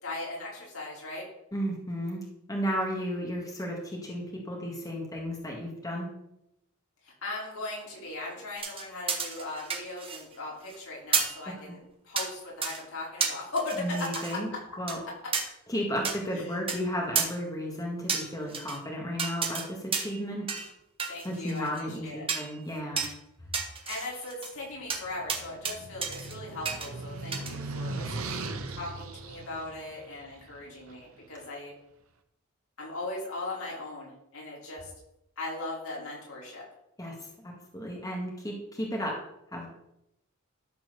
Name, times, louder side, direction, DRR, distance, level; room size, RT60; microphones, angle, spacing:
voice 1, 0.0-1.2 7.0-14.4 16.3-16.6 21.1-22.3 23.8-31.7 32.8-34.9 35.4-36.6, left 2 dB, 75° left, -4 dB, 4.7 m, -38 dB
voice 2, 1.5-2.2 2.5-6.1 11.7-11.8 13.8-14.5 14.8-15.0 15.7-20.5 21.2-23.1 37.0-39.2 39.5-39.7, equal, 15° left, -1 dB, 1.9 m, -33 dB
sound 1, 8.6-10.3 10.6-10.8 11.1-11.4 12.2-12.3 12.6-12.8 13.2-14.4 14.9-15.0 15.3-15.4 16.0-16.2 16.7-16.8 17.1-17.3 18.1-18.8 19.2-19.7 19.9-20.2 20.5-20.7 21.0-21.8 22.3-22.5 23.0-23.1 23.5-24.5 24.9-25.0 25.3-25.7 26.0-26.3 26.6-26.9 27.3-27.5, right 5 dB, 25° right, 1.4 m, -31 dB
sound 2, 24.8-31.1, right 2 dB, 70° right, 1.2 m, -39 dB
12.5 x 4.6 x 6.9 m, 0.84 s
head